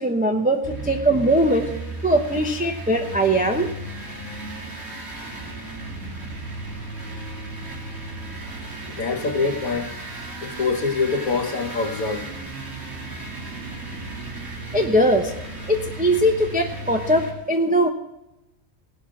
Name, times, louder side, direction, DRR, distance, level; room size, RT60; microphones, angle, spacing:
voice 1, 0.0-1.7 2.0-3.7 14.7-15.3 15.7-17.9, right 1 dB, 10° right, 0.7 m, -20 dB
sound 1, 0.6-17.3, right 2 dB, 50° right, 3.1 m, -35 dB
voice 2, 8.9-9.9 10.4-12.3, left 4 dB, 90° left, 1.5 m, -25 dB
18.0 x 6.3 x 7.1 m
omnidirectional pair, 1.4 m